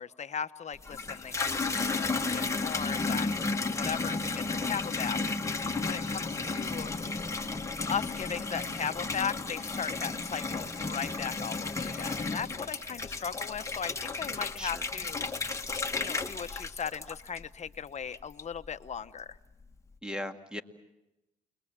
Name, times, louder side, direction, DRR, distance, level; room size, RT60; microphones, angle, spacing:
voice 1, 0.0-5.2 5.8-6.9 7.9-15.7 16.0-19.4, left 7 dB, 45° left, 10 dB, 1.1 m, -37 dB
Water tap faucet / Bathtub (filling or washing), 0.7-17.7 18.1-18.7, left 3 dB, 15° left, 1.8 m, -33 dB
voice 2, 11.8-12.3 12.9-13.0 14.6-14.9 20.0-20.6, left 1 dB, 5° right, 6 dB, 2.0 m, -39 dB
30.0 x 21.5 x 7.5 m, 0.92 s
cardioid pair, 85°, 17 cm